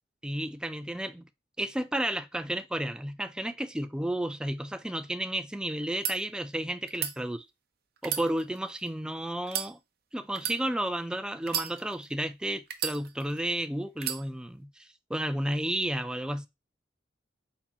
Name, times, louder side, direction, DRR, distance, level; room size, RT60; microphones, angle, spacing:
voice 1, 0.2-1.3 1.6-7.4 8.0-9.8 10.1-16.5, right 1 dB, 5° right, 0.3 m, -32 dB
sound 1, 5.8-6.2 6.9-7.1 8.0-8.9 9.4-9.7 10.3-10.6 11.4-12.1 12.7-13.4 14.0-14.2, right 9 dB, 55° right, 0.7 m, -33 dB
4.3 x 4.2 x 2.8 m
head